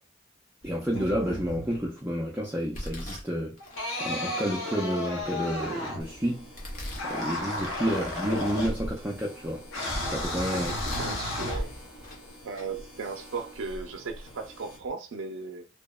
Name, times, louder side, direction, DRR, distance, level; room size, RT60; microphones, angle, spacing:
Domestic sounds home sounds, 0.6-1.0 1.6-2.0 2.7-3.9 4.5-4.6 5.1-5.9 6.6-7.9 8.3-8.4 9.0-9.9 10.4-11.2 11.5-12.3 12.5-12.7 13.5-13.6 14.3-14.4 14.7-14.9, left 1 dB, 40° left, 0.6 m, -42 dB
voice 1, 0.6-3.6 4.0-6.5 7.0-9.7 10.0-10.7, equal, 10° right, 0.3 m, -30 dB
sound 1, 0.9-1.9 3.6-6.2 6.9-9.2 9.7-12.0, left 1 dB, 80° left, 0.8 m, -33 dB
sound 2, 6.0-14.8, equal, 60° left, 1.1 m, -47 dB
voice 2, 10.9-11.7 12.4-15.7, right 4 dB, 80° right, 0.4 m, -36 dB
2.7 x 2.0 x 2.2 m
head